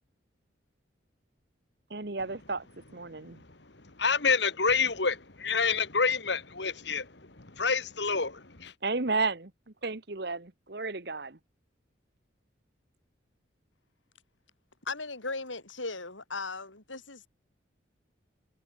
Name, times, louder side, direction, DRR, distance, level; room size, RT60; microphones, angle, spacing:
voice 1, 1.9-2.6 2.9-3.4 8.8-9.5 9.8-11.4, right 3 dB, 55° right, 1.5 m, -32 dB
voice 2, 3.2-8.7, left 5 dB, 65° left, 2.4 m, -29 dB
voice 3, 14.9-17.3, left 3 dB, 90° left, 7.5 m, -37 dB
head